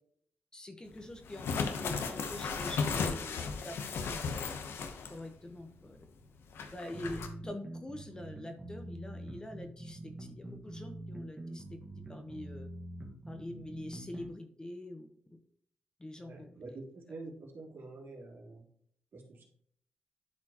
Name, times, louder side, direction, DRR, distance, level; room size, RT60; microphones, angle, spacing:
voice 1, 0.5-4.6 5.1-6.0 6.7-11.8 12.1-12.7 13.3-15.1 16.0-16.3, left 1 dB, 20° left, 6 dB, 1.0 m, -45 dB
sound 1, 1.2-5.3 5.6-5.7 6.5-7.3, left 5 dB, 80° left, 0.9 m, -35 dB
sound 2, 6.9-14.3, right 1 dB, 15° right, 1.6 m, -45 dB
voice 2, 16.2-18.6 19.1-19.4, right 3 dB, 65° right, -2 dB, 3.0 m, -47 dB
11.0 x 4.3 x 2.9 m, 0.63 s
cardioid pair, 100°, 4 cm